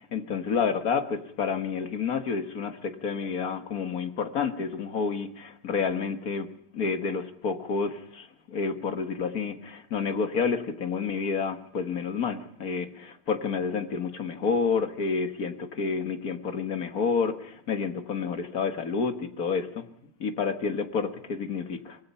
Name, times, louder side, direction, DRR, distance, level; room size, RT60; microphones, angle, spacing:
voice 1, 0.0-6.5 6.7-19.9 20.2-22.0, left 5 dB, 60° left, 8 dB, 2.0 m, -29 dB
24.5 x 21.0 x 5.6 m, 0.70 s
omnidirectional pair, 1.8 m